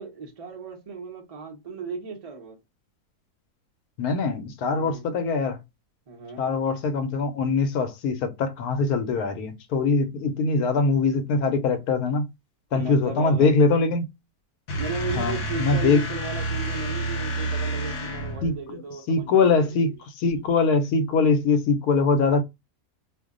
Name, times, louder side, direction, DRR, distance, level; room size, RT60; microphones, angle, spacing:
voice 1, 0.0-2.6 4.8-5.0 6.1-6.5 12.7-13.5 14.8-20.0, right 4 dB, 35° right, 0.6 m, -35 dB
voice 2, 4.0-5.6 6.4-12.3 12.7-14.0 15.1-16.0 18.4-18.8 19.1-22.4, left 4 dB, 80° left, 1.1 m, -22 dB
sound 1, 14.7-18.6, right 1 dB, 65° left, 0.8 m, -29 dB
2.6 x 2.1 x 3.7 m
omnidirectional pair, 1.6 m